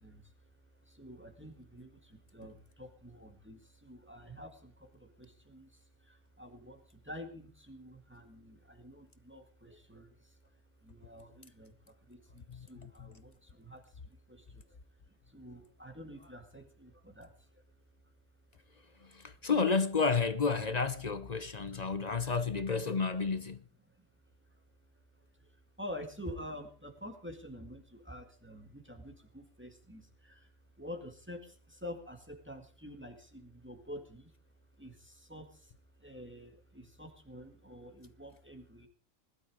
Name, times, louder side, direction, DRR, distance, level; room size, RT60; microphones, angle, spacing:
voice 1, 0.0-17.6 19.0-19.1 21.7-22.0 23.9-24.1 24.5-24.6 25.2-34.3 34.7-38.9, equal, 10° right, 1.9 m, -49 dB
voice 2, 12.5-13.1 19.0-23.6, left 4 dB, 35° left, 0.8 m, -31 dB
19.0 x 12.0 x 4.9 m
omnidirectional pair, 1.3 m